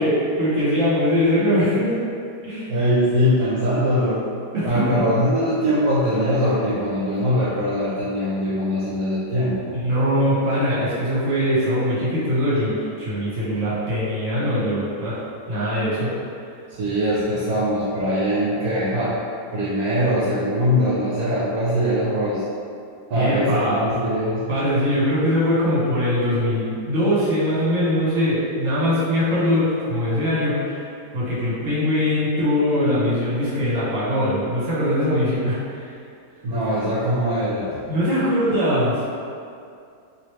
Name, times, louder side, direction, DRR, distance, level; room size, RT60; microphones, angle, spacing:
voice 1, 0.0-1.9 2.4-2.7 4.5-5.0 6.1-6.3 9.7-15.2 15.5-16.1 23.1-23.8 24.5-30.8 31.1-35.9 37.9-39.1, equal, 50° right, -8 dB, 1.3 m, -21 dB
voice 2, 2.7-4.2 4.6-9.7 16.8-19.1 19.5-22.4 23.1-24.4 36.4-37.7, equal, 65° right, -9 dB, 1.0 m, -22 dB
3.1 x 3.0 x 3.0 m, 2.4 s
omnidirectional pair, 2.1 m